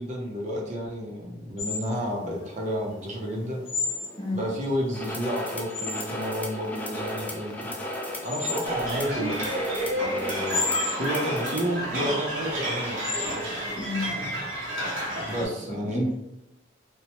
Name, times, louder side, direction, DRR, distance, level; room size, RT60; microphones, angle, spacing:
voice 1, 0.0-3.6 4.3-7.7 8.2-9.4 9.9-10.6 11.0-13.1 15.3-16.1, equal, 40° right, -1 dB, 0.6 m, -31 dB
sound 1, 1.6-15.0, left 4 dB, 75° left, 0.7 m, -35 dB
sound 2, 4.9-11.8, left 1 dB, 10° left, 0.3 m, -35 dB
sound 3, 8.7-15.5, right 1 dB, 80° right, 0.8 m, -30 dB
voice 2, 13.8-14.2 15.4-16.2, left 1 dB, 25° left, -3 dB, 0.7 m, -31 dB
3.0 x 2.0 x 2.9 m, 0.85 s
head